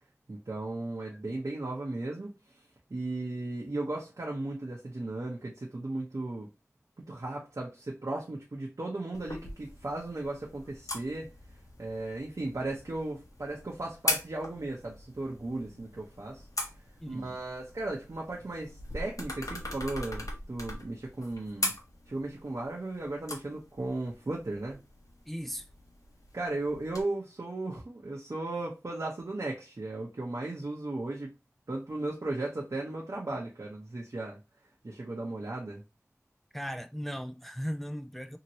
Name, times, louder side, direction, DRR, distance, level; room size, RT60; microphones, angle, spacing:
voice 1, 0.3-2.6 2.9-6.5 7.0-11.3 11.8-16.4 17.1-21.7 22.1-24.8 26.3-31.3 31.7-34.4 34.8-35.8, right 2 dB, 75° right, 0.8 m, -36 dB
sound 1, 9.1-27.0, left 2 dB, 85° left, 0.9 m, -40 dB
voice 2, 17.0-17.4 25.3-25.7 36.5-38.4, equal, 5° left, 0.3 m, -37 dB
2.9 x 2.8 x 2.9 m
wide cardioid pair, 50°, 6 cm